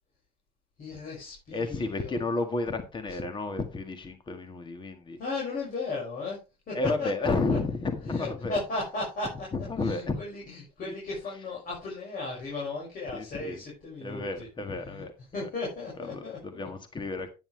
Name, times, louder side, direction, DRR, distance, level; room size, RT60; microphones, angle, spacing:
voice 1, 0.8-2.2 3.1-3.2 5.2-6.4 6.7-7.6 8.0-9.5 9.8-14.5 14.8-15.0 15.3-16.7, left 3 dB, 55° left, -4 dB, 5.9 m, -36 dB
voice 2, 1.5-5.2 6.7-8.6 9.5-10.2 10.9-11.0 13.1-13.6 14.0-15.5 16.1-17.3, left 3 dB, 30° left, 8 dB, 1.7 m, -32 dB
9.8 x 9.5 x 3.3 m, 0.29 s
cardioid pair, 110°, 17 cm